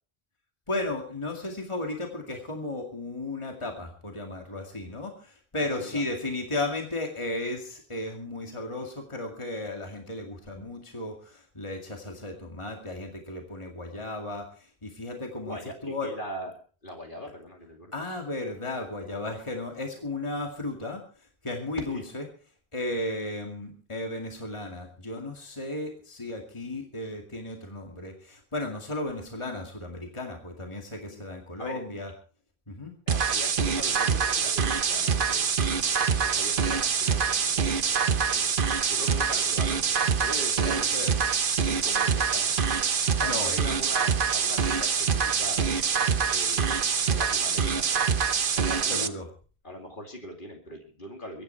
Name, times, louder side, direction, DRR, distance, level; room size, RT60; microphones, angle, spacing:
voice 1, 0.7-15.6 15.8-16.1 17.9-21.0 21.4-22.2 22.7-32.1 32.7-32.9 40.6-41.1 43.2-43.5 48.9-49.3, left 2 dB, 30° left, 2 dB, 2.3 m, -34 dB
voice 2, 5.6-6.0 15.4-16.5 16.8-17.9 21.9-22.0 31.1-31.2 31.6-31.8 33.1-35.5 35.8-37.7 37.9-38.6 38.9-39.8 40.2-41.3 41.6-42.5 43.2-45.6 46.3-46.8 47.0-47.9 48.5-49.1 49.6-51.4, equal, 55° left, 2 dB, 2.7 m, -41 dB
sound 1, 33.1-49.1, right 6 dB, 55° right, 1.1 m, -25 dB
23.5 x 10.0 x 4.5 m, 0.40 s
omnidirectional pair, 1.1 m